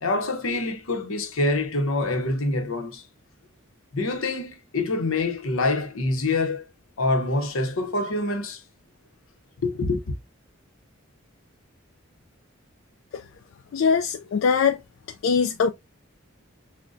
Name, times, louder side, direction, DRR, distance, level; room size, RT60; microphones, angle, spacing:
voice 1, 0.0-3.0 3.9-6.6 7.0-8.6 9.6-10.0, left 2 dB, 85° left, 0.8 m, -25 dB
voice 2, 13.7-14.8 15.2-15.7, left 6 dB, 65° left, 0.3 m, -22 dB
6.2 x 2.2 x 2.5 m
head